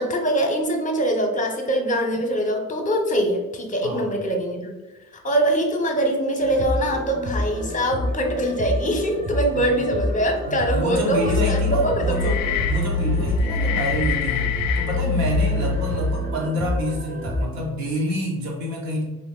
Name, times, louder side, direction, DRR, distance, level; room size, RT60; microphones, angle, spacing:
voice 1, 0.0-4.7 5.2-12.5, right 1 dB, 20° left, 3 dB, 0.7 m, -23 dB
voice 2, 3.8-4.1 9.5-9.7 10.5-19.0, equal, 80° right, -1 dB, 0.9 m, -28 dB
sound 1, 6.4-17.5, left 1 dB, 20° right, 0.7 m, -29 dB
sound 2, 11.0-16.3, left 5 dB, 55° left, 0.5 m, -25 dB
2.9 x 2.5 x 3.7 m, 1.1 s
figure-of-eight pair, 45°, 42 cm